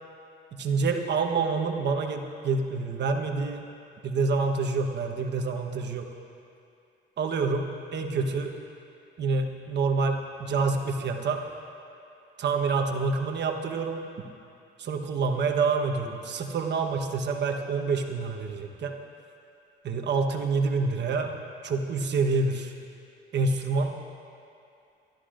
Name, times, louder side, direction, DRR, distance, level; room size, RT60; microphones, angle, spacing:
voice 1, 0.5-3.6 4.0-6.1 7.2-7.7 7.9-8.5 9.2-11.4 12.4-14.0 14.8-19.0 19.8-21.3 21.6-22.7 23.3-23.9, right 4 dB, 60° right, 4 dB, 1.2 m, -27 dB
27.0 x 12.0 x 2.6 m, 2.6 s
cardioid pair, 90°, 20 cm